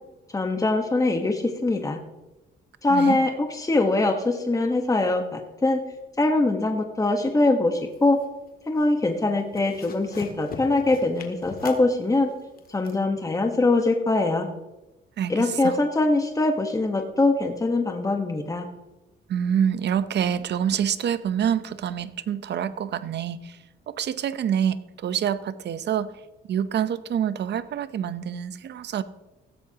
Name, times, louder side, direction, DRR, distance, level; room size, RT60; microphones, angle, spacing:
voice 1, 0.3-2.0 2.8-5.8 6.2-8.2 8.7-12.3 12.7-14.5 15.3-18.7, left 2 dB, 15° left, 4 dB, 1.3 m, -23 dB
sound 1, 7.8-8.5 8.8-9.1 9.4-12.9, left 4 dB, 50° left, 1.9 m, -41 dB
voice 2, 15.2-15.8 19.3-23.6 23.9-26.1 26.5-29.0, right 8 dB, 60° right, 14 dB, 0.8 m, -26 dB
16.0 x 13.5 x 2.9 m, 1.0 s
cardioid pair, 90°, 20 cm